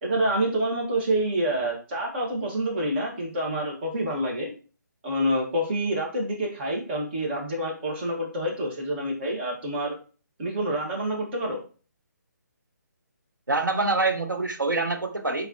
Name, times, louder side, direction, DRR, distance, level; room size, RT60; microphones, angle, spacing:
voice 1, 0.0-4.5 5.0-9.9 10.4-11.6, right 1 dB, 35° right, -1 dB, 1.5 m, -27 dB
voice 2, 13.5-15.5, right 3 dB, 90° right, 5 dB, 0.9 m, -25 dB
4.3 x 4.0 x 2.8 m, 0.37 s
figure-of-eight pair, 145°, 10 cm